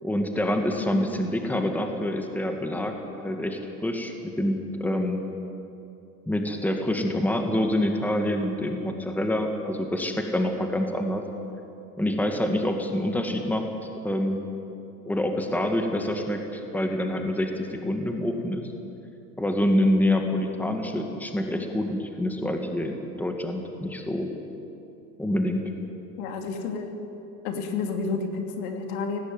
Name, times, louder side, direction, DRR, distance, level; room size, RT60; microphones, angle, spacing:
voice 1, 0.0-5.2 6.3-11.2 12.0-13.7 14.0-14.4 15.1-18.7 19.4-24.3 25.2-25.6, left 1 dB, 5° left, 4 dB, 2.1 m, -26 dB
voice 2, 26.2-26.9 27.4-29.2, left 4 dB, 70° left, 4 dB, 2.9 m, -30 dB
17.5 x 16.0 x 9.5 m, 2.8 s
hypercardioid pair, 100°, 46 cm